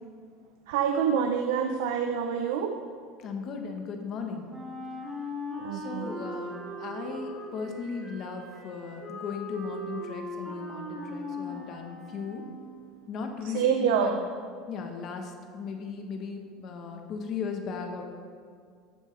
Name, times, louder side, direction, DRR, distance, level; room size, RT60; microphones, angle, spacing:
voice 1, 0.7-2.8 5.6-6.1 13.4-14.2, right 7 dB, 85° right, 5 dB, 0.6 m, -27 dB
voice 2, 3.2-4.5 5.7-12.4 13.1-14.1 14.7-18.0, left 5 dB, 35° left, 4 dB, 0.9 m, -37 dB
Wind instrument woodwind instrument, 4.5-12.6, left 1 dB, 15° right, 2.6 m, -39 dB
12.5 x 7.5 x 3.2 m, 2.2 s
cardioid pair, 170°, 0 cm